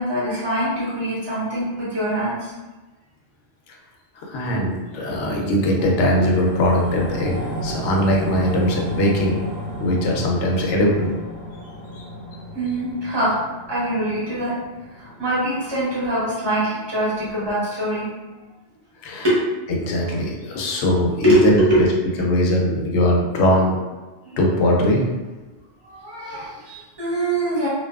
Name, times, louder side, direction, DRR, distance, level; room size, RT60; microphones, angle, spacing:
voice 1, 0.0-2.5 12.5-13.4 13.7-14.5 15.0-18.1 19.2-19.4 20.6-20.8 21.2-21.9 24.2-24.4 25.8-27.7, right 1 dB, 25° right, -9 dB, 0.8 m, -23 dB
voice 2, 4.3-9.4 9.8-11.1 12.0-12.1 19.0-19.3 19.8-21.9 22.2-23.8 24.4-25.0, left 1 dB, 70° left, -1 dB, 0.8 m, -20 dB
sound 1, 5.9-16.5 16.9-17.0, equal, 65° right, 0.8 m, -33 dB
2.6 x 2.3 x 2.2 m, 1.2 s
omnidirectional pair, 1.3 m